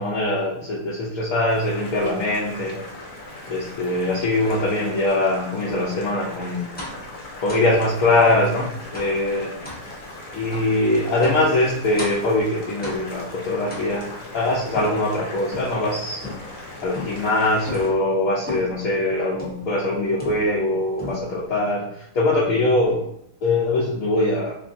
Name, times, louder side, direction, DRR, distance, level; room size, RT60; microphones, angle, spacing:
voice 1, 0.0-2.8 3.5-6.7 7.4-9.5 10.3-14.1 14.3-16.2 16.8-23.0 23.4-24.6, left 2 dB, 65° left, -5 dB, 1.1 m, -22 dB
Boiling, 1.5-17.9, left 2 dB, 85° left, 1.6 m, -39 dB
sound 1, 6.8-7.1 7.5-7.7 8.3-8.5 8.9-9.2 9.6-9.9 10.5-10.7 11.2-11.5 12.0-12.3 12.8-13.2 13.7-14.2 14.7-15.8 16.2-16.6 16.9-17.3 17.7-18.0 18.5-18.8 19.4-19.7 20.2-20.7 21.0-21.5, left 2 dB, 10° left, 0.5 m, -35 dB
3.6 x 3.1 x 2.6 m, 0.75 s
omnidirectional pair, 1.8 m